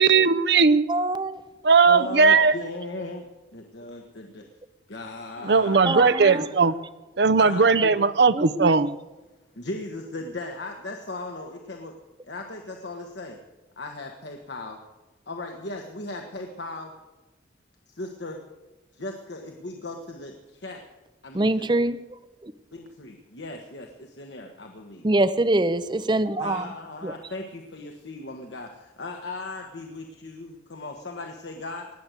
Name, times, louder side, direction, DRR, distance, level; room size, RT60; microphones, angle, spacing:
voice 1, 0.0-0.9 1.6-2.5 5.4-6.7 7.2-9.0, right 4 dB, 65° right, 0.6 m, -18 dB
voice 2, 0.9-1.4 1.8-1.9 5.8-6.5 7.8-7.9 8.3-8.9 21.3-22.0 22.4-22.5 25.0-26.7 27.0-27.1, right 2 dB, 25° right, 0.6 m, -24 dB
voice 3, 1.8-3.3 3.5-4.5 4.9-6.7 7.4-8.0 9.5-12.0 12.2-13.4 13.8-14.8 15.3-16.9 17.9-18.4 18.9-20.8 21.2-21.8 22.7-25.1 26.4-31.9, left 2 dB, 70° left, 1.4 m, -37 dB
19.5 x 7.7 x 8.2 m
head